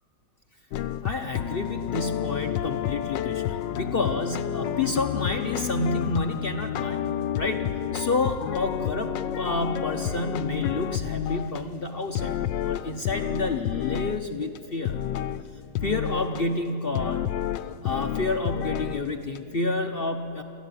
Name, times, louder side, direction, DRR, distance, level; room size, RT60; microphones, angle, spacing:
sound 1, 0.7-11.6 12.1-14.2 14.5-14.6 14.8-15.4 15.7-16.4 16.9-19.0 19.3-19.4, left 10 dB, 75° left, 1.3 m, -30 dB
voice 1, 1.0-7.0 7.4-15.0 15.8-17.3 17.8-20.4, left 2 dB, 50° left, 5 dB, 0.7 m, -29 dB
29.0 x 13.5 x 9.3 m, 2.7 s
omnidirectional pair, 2.1 m